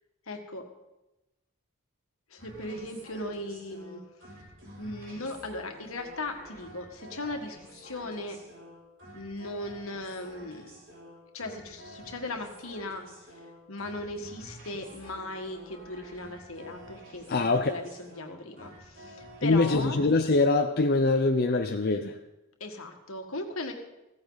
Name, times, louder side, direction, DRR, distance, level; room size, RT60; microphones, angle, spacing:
voice 1, 0.3-0.7 2.3-4.1 4.8-8.4 9.1-10.7 11.3-13.1 13.7-20.0 22.6-23.7, left 2 dB, 75° left, 4 dB, 1.8 m, -38 dB
sound 1, 2.4-20.4, equal, 60° right, 5.3 m, -49 dB
voice 2, 17.3-17.7 19.4-22.2, left 3 dB, 45° left, 5 dB, 0.6 m, -24 dB
15.5 x 14.5 x 4.0 m, 0.98 s
head